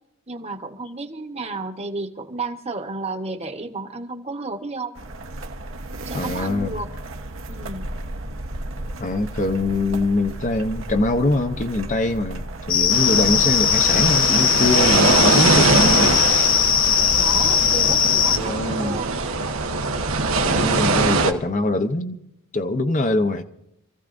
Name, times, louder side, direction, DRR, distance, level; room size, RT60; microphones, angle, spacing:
voice 1, 0.3-5.0 6.0-6.9 7.5-7.9 17.2-19.3, right 3 dB, 30° right, 1.1 m, -32 dB
sound 1, 4.9-18.5, right 1 dB, 70° right, 1.0 m, -35 dB
voice 2, 6.1-6.8 9.0-16.5 17.8-19.0 20.4-22.2 22.5-23.4, left 2 dB, 40° left, 0.8 m, -23 dB
sound 2, 12.7-18.4, left 8 dB, 65° left, 0.8 m, -19 dB
sound 3, 12.9-21.3, right 3 dB, 90° right, 1.2 m, -22 dB
27.5 x 15.0 x 2.6 m
head